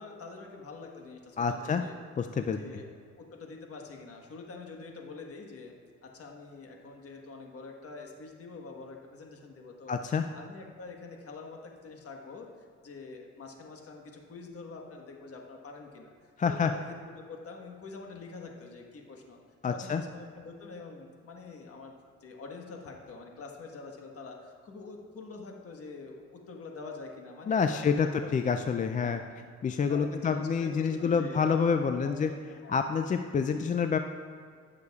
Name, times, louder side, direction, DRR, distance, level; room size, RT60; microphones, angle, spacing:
voice 1, 0.0-2.0 2.4-2.9 3.2-5.7 6.0-10.0 10.3-12.5 12.8-16.1 16.4-19.4 19.7-21.9 22.2-28.3 28.9-29.2 29.9-32.3 32.6-32.8, left 4 dB, 50° left, 2 dB, 1.4 m, -45 dB
voice 2, 1.4-1.8 2.2-2.6 9.9-10.2 16.4-16.7 19.6-20.0 27.5-29.2 29.6-32.3 32.7-34.0, left 6 dB, 25° left, 7 dB, 0.3 m, -27 dB
14.5 x 6.6 x 2.4 m, 2.1 s
cardioid pair, 90°, 30 cm